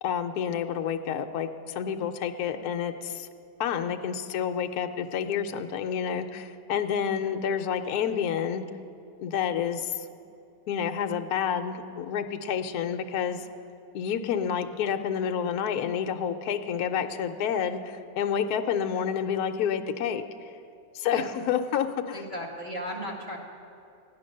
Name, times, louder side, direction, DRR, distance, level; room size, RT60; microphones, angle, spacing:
voice 1, 0.0-3.3 3.6-8.6 9.2-10.1 10.7-13.4 13.9-20.2 20.9-22.2, left 8 dB, 70° left, 6 dB, 1.1 m, -29 dB
voice 2, 22.1-23.4, equal, 25° right, -3 dB, 2.1 m, -37 dB
14.5 x 9.7 x 6.5 m, 2.5 s
omnidirectional pair, 1.9 m